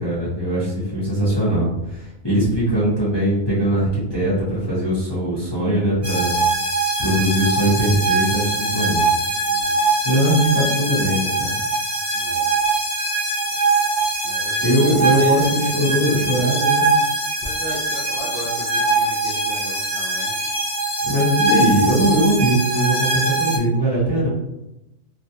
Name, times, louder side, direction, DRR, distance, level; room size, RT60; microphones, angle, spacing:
voice 1, 0.0-6.3 7.0-9.1 10.0-11.5 14.6-16.9 21.0-24.3, equal, 20° left, -10 dB, 0.8 m, -20 dB
sound 1, 6.0-23.6, right 3 dB, 10° right, 1.0 m, -22 dB
voice 2, 9.4-9.8 12.1-12.5 14.2-15.9 17.4-20.6 23.8-24.0, right 1 dB, 55° right, -7 dB, 0.7 m, -35 dB
3.1 x 2.3 x 2.8 m, 0.91 s
omnidirectional pair, 1.6 m